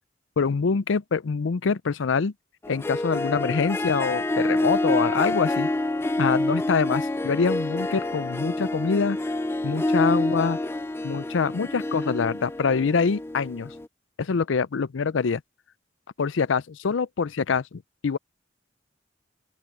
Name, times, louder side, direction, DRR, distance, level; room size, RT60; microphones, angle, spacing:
voice 1, 0.4-2.3 2.7-5.7 6.2-9.2 9.6-10.6 11.0-13.7 14.2-15.4 16.2-18.2, left 5 dB, 80° left, 0.5 m, -25 dB
Harp, 2.6-13.9, left 2 dB, 10° left, 0.3 m, -27 dB
open air
head